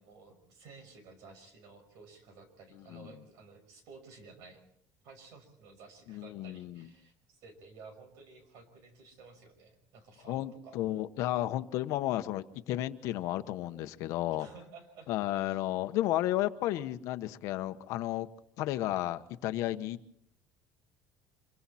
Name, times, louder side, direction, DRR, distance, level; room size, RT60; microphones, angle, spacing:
voice 1, 0.0-4.6 5.0-10.8 14.3-15.8, right 4 dB, 65° right, 5.8 m, -54 dB
voice 2, 6.1-6.9 10.2-14.5 15.1-18.3 18.6-20.0, left 14 dB, 60° left, 1.1 m, -33 dB
26.5 x 23.0 x 4.3 m
cardioid pair, 160°, 6 cm